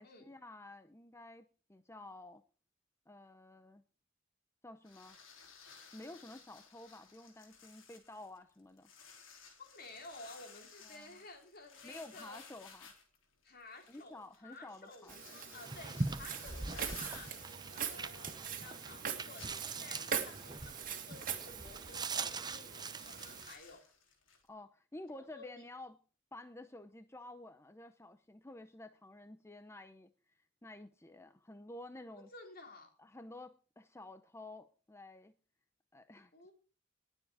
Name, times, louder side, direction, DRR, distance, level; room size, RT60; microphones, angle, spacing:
voice 1, 0.0-2.4 3.1-3.8 4.6-5.2 5.9-8.9 10.8-11.2 11.8-12.9 13.9-15.2 24.5-26.0 26.3-32.3 33.0-35.3 35.9-36.3, left 2 dB, 15° left, 9 dB, 0.7 m, -51 dB
sound 1, 4.8-18.6 18.9-19.0 19.3-24.5, left 5 dB, 85° left, 3.7 m, -58 dB
voice 2, 9.6-12.4 13.4-17.3 17.7-23.8 25.3-25.6 32.1-32.9 36.3-36.5, left 2 dB, 50° left, 3 dB, 4.0 m, -53 dB
Walk footsteps, 15.1-23.4, right 7 dB, 45° right, 2.4 m, -43 dB
sound 2, 15.6-23.5, right 3 dB, 20° right, 0.8 m, -42 dB
20.0 x 7.3 x 4.9 m, 0.38 s
head